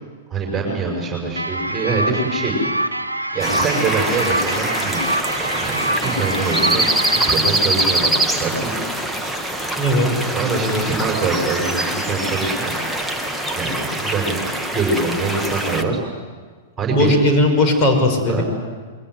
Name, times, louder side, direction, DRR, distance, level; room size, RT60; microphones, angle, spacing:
voice 1, 0.3-2.5 3.3-5.1 5.4-6.9 7.1-8.8 10.3-12.7 13.5-16.0 16.8-17.2 18.3-18.4, right 4 dB, 20° right, 0 dB, 6.1 m, -24 dB
sound 1, 1.4-7.3, right 1 dB, 85° right, 1.3 m, -25 dB
sound 2, 3.4-15.8, right 1 dB, ahead, 1.8 m, -23 dB
voice 2, 9.8-10.1 10.6-10.9 16.9-18.4, left 1 dB, 30° left, 3 dB, 5.8 m, -17 dB
27.5 x 22.5 x 8.1 m, 1.5 s
figure-of-eight pair, 100°, 0 cm